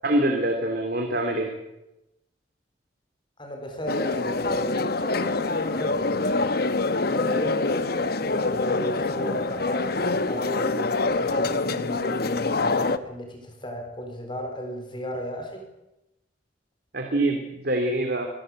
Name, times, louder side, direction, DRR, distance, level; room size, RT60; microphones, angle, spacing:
voice 1, 0.0-1.5 16.9-18.3, right 1 dB, 55° right, 3 dB, 2.9 m, -24 dB
voice 2, 3.4-6.5 7.1-15.7, equal, 25° left, 5 dB, 4.3 m, -34 dB
sound 1, 3.9-13.0, left 3 dB, 55° left, 1.0 m, -25 dB
24.5 x 16.5 x 7.8 m, 0.92 s
head